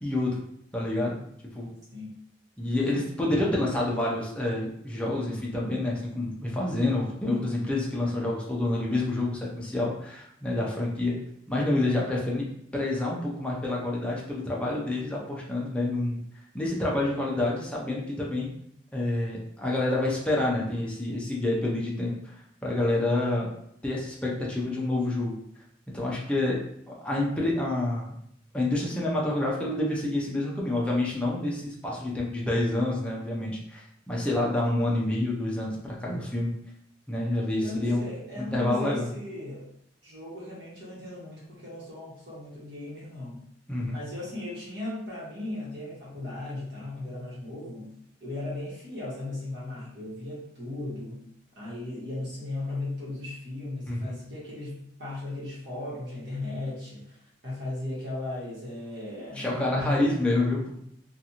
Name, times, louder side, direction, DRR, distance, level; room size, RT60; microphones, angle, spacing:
voice 1, 0.0-0.4 0.7-1.2 1.5-1.7 2.6-11.1 11.5-12.5 12.7-16.2 16.5-18.5 18.9-22.3 22.6-23.5 23.8-25.3 25.9-26.6 26.9-28.1 28.5-36.5 37.1-38.0 38.4-39.1 43.7-44.0 53.9-54.1 59.4-60.8, left 2 dB, 5° left, -4 dB, 0.5 m, -28 dB
voice 2, 37.6-39.7 40.0-43.4 43.9-47.9 48.2-51.2 51.5-60.2, left 2 dB, 65° right, -7 dB, 1.3 m, -36 dB
2.6 x 2.4 x 2.8 m, 0.71 s
head